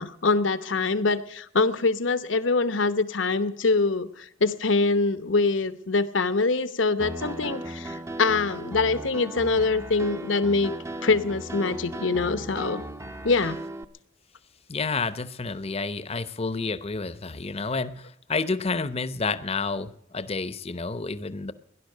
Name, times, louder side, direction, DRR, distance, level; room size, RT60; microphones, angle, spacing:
voice 1, 0.0-10.7 11.0-12.8 13.2-13.6, left 3 dB, 75° left, 13 dB, 1.0 m, -24 dB
Piano, 7.0-13.8, right 1 dB, 15° right, 0.6 m, -37 dB
voice 2, 14.7-21.5, left 4 dB, 30° left, 16 dB, 0.7 m, -30 dB
17.0 x 11.0 x 6.7 m, 0.70 s
head